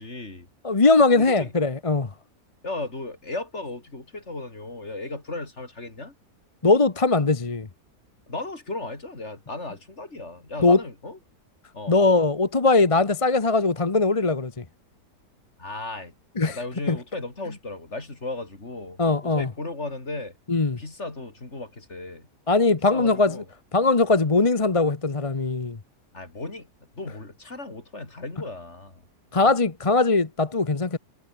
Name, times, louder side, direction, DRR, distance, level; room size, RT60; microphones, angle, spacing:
voice 1, 0.0-0.5 1.1-1.5 2.6-6.1 8.3-11.2 11.7-12.0 15.6-16.1 16.4-20.3 20.8-22.3 22.9-23.4 26.1-26.7 27.0-29.0 29.4-29.6, left 2 dB, 45° left, 4.3 m, -35 dB
voice 2, 0.6-2.1 6.6-7.7 10.6-10.8 11.9-14.6 16.4-16.6 16.9-17.0 19.0-19.5 20.5-20.8 22.5-23.4 23.7-25.8 29.3-31.0, left 3 dB, 25° left, 1.0 m, -20 dB
omnidirectional pair, 1.7 m